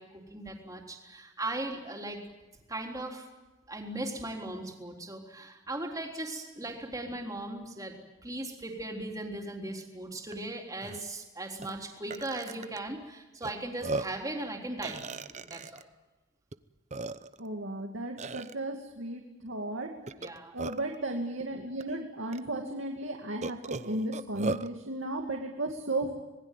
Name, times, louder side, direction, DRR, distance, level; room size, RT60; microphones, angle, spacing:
voice 1, 0.0-2.2 2.7-3.3 3.7-7.9 8.2-15.8 20.2-20.5, right 2 dB, 20° right, 1 dB, 3.7 m, -38 dB
Burping eructation, 10.3-10.4 10.8-11.0 11.6-11.7 12.1-12.8 13.4-13.5 13.8-14.2 14.8-15.8 16.5-16.6 16.9-17.5 18.2-18.5 20.1-21.0 21.8-21.9 22.3-22.4 23.4-24.7, right 3 dB, 35° right, 0.8 m, -36 dB
voice 2, 17.4-19.9 20.5-26.1, right 2 dB, 80° right, 2 dB, 2.5 m, -35 dB
26.5 x 20.5 x 9.2 m, 1.1 s
head